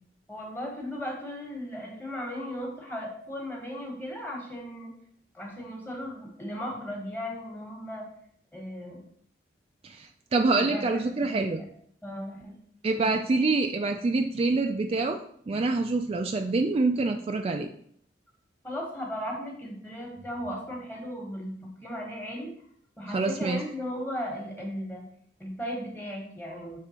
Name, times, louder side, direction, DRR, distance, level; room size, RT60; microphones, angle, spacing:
voice 1, 0.3-4.9 5.3-8.1 8.5-9.0 10.5-10.9 11.2-11.7 12.0-12.6 12.9-13.1 18.6-21.5 21.8-22.5 23.0-25.0 25.4-26.8, equal, 10° left, -1 dB, 1.4 m, -36 dB
voice 2, 9.8-11.6 12.8-15.2 15.5-17.7 23.1-23.6, right 3 dB, 35° right, 4 dB, 0.3 m, -26 dB
6.7 x 3.5 x 4.3 m, 0.65 s
head